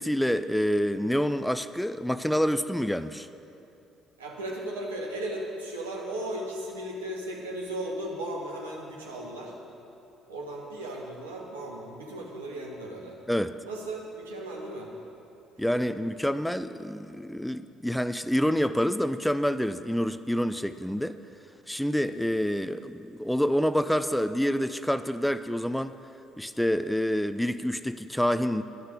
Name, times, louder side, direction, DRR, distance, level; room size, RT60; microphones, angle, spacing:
voice 1, 0.0-3.3 13.3-13.5 15.6-21.2 21.7-25.9 26.4-28.6, equal, 5° left, 12 dB, 0.4 m, -27 dB
voice 2, 4.2-9.5 10.3-13.2 13.6-14.9 15.7-15.8, right 1 dB, 85° right, -2 dB, 1.5 m, -36 dB
11.0 x 6.6 x 8.4 m, 2.8 s
hypercardioid pair, 50°, 0 cm